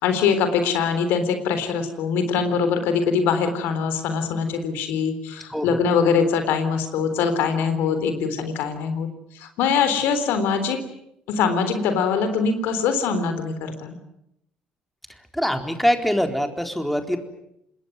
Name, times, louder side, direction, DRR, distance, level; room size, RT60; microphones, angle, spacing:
voice 1, 0.0-9.1 9.4-10.8 11.3-14.0, left 6 dB, 70° left, 9 dB, 3.7 m, -23 dB
voice 2, 5.5-5.8 15.3-17.2, equal, ahead, 5 dB, 4.0 m, -23 dB
26.5 x 21.0 x 9.5 m, 0.80 s
hypercardioid pair, 55°, 4 cm